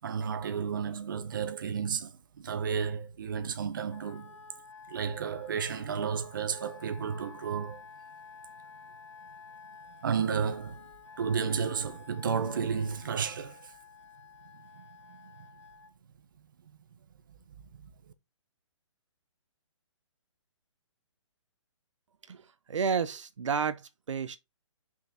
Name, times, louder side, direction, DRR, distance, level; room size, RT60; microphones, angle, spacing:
voice 1, 0.0-4.4 4.9-7.8 10.0-10.9 11.2-13.7 14.7-15.3, right 6 dB, 40° right, 0.8 m, -32 dB
Wind instrument woodwind instrument, 3.9-15.9, left 5 dB, 65° left, 1.2 m, -51 dB
voice 2, 22.3-24.4, right 6 dB, 70° right, 0.8 m, -31 dB
5.8 x 4.4 x 3.7 m
hypercardioid pair, 175°, 16 cm